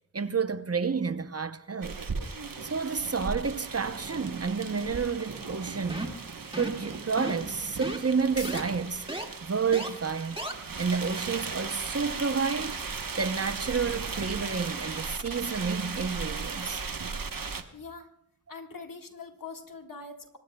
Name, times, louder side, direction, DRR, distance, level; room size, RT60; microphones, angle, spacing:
voice 1, 0.1-2.0 2.6-6.1 6.5-9.0 9.4-10.4 10.8-12.8 13.2-16.8, right 5 dB, 45° right, 0.8 m, -30 dB
sound 1, 1.8-17.6, right 4 dB, 70° right, 1.2 m, -37 dB
sound 2, 5.9-6.2 6.5-6.8 7.2-7.5 7.8-8.0 8.4-8.6 9.1-9.2 9.7-9.9 10.4-10.5, right 1 dB, 15° right, 2.1 m, -34 dB
sound 3, 8.2-15.3 15.6-15.7, left 1 dB, 40° left, 3.7 m, -51 dB
voice 2, 17.7-18.1 18.5-20.4, left 4 dB, 65° left, 1.8 m, -43 dB
25.5 x 20.0 x 2.3 m
wide cardioid pair, 50°, 35 cm